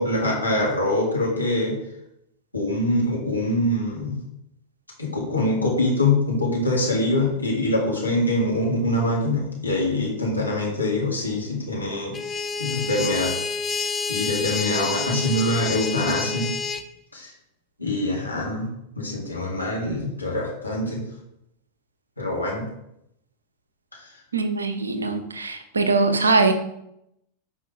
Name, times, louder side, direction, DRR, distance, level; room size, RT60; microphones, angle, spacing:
voice 1, 0.0-1.8 2.5-4.2 5.0-12.2 12.6-13.3 13.8-16.5 17.1-17.3 17.8-18.7 19.0-21.0 22.2-22.7, left 1 dB, 85° left, -3 dB, 2.5 m, -24 dB
sound 1, 12.1-16.8, left 4 dB, 20° left, 0.6 m, -28 dB
voice 2, 24.3-26.5, right 3 dB, 75° right, 9 dB, 1.0 m, -22 dB
9.5 x 5.1 x 3.5 m, 0.79 s
figure-of-eight pair, 90°, 0 cm